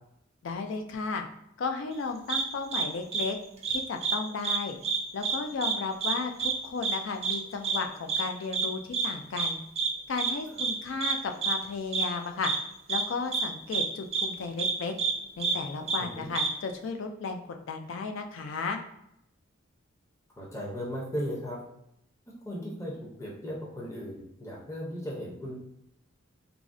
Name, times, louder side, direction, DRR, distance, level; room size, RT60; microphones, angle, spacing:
voice 1, 0.4-1.3 1.6-3.4 3.7-4.8 5.1-9.6 10.1-12.5 12.9-14.9 15.4-17.4 17.7-18.8, left 4 dB, 65° left, 4 dB, 0.4 m, -34 dB
sound 1, 2.3-2.4 2.7-2.8 3.1-3.2 3.6-4.2 4.4-4.6 4.8-5.4 5.6-5.7 6.0-6.1 6.4-6.5 6.8-7.0 7.2-7.4 7.6-7.8 8.1-8.2 8.5-8.7 8.9-9.1 9.4-9.5 9.8-9.9 10.2-10.3 10.6-10.7 11.0-11.1 11.4-11.5 11.9-12.1 12.4-12.6 12.9-13.0 13.3-13.4 13.7-13.9 14.1-14.3 14.6-14.7 15.0-15.1 15.4-15.5 15.9-16.0 16.3-16.5, right 5 dB, 30° right, 0.4 m, -27 dB
voice 2, 20.4-21.6 22.4-25.6, equal, 15° left, -4 dB, 0.6 m, -36 dB
3.5 x 2.0 x 2.5 m, 0.79 s
head